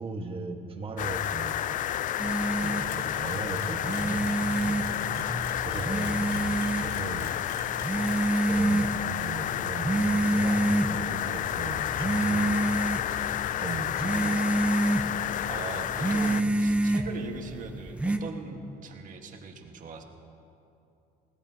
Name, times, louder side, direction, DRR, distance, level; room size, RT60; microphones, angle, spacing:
voice 1, 0.0-1.8 2.5-5.3 5.6-7.4 8.5-12.5 13.6-14.7, right 3 dB, 30° right, 3 dB, 1.4 m, -38 dB
sound 1, 1.0-16.4, left 11 dB, 50° left, 0.4 m, -31 dB
sound 2, 2.2-18.2, right 2 dB, 5° right, 0.8 m, -29 dB
Camera, 2.9-8.4, left 8 dB, 80° left, 2.0 m, -46 dB
voice 2, 15.5-20.0, right 4 dB, 50° right, 3 dB, 1.5 m, -40 dB
20.5 x 17.0 x 2.8 m, 2.8 s
cardioid pair, 110°, 17 cm